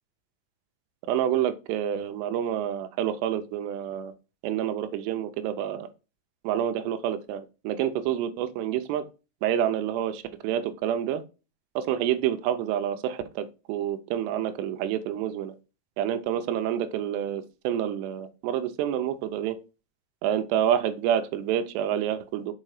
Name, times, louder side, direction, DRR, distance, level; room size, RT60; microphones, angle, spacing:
voice 1, 1.1-4.1 4.4-5.9 6.4-9.0 9.4-11.2 11.8-15.5 16.0-19.6 20.2-22.5, right 10 dB, 85° right, 10 dB, 2.8 m, -28 dB
6.5 x 4.8 x 4.8 m, 0.31 s
omnidirectional pair, 4.9 m